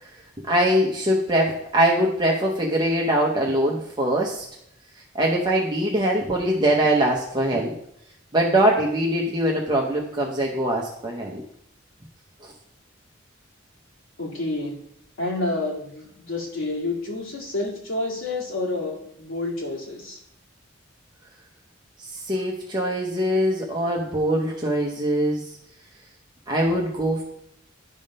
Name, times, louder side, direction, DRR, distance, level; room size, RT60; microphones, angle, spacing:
voice 1, 0.5-4.4 5.1-7.8 8.3-11.4 12.4-12.5 22.0-25.5 26.5-27.2, right 1 dB, 20° right, -2 dB, 0.8 m, -22 dB
voice 2, 14.2-14.7 15.2-20.2, left 2 dB, 90° left, -3 dB, 2.2 m, -29 dB
10.5 x 3.6 x 5.4 m, 0.74 s
head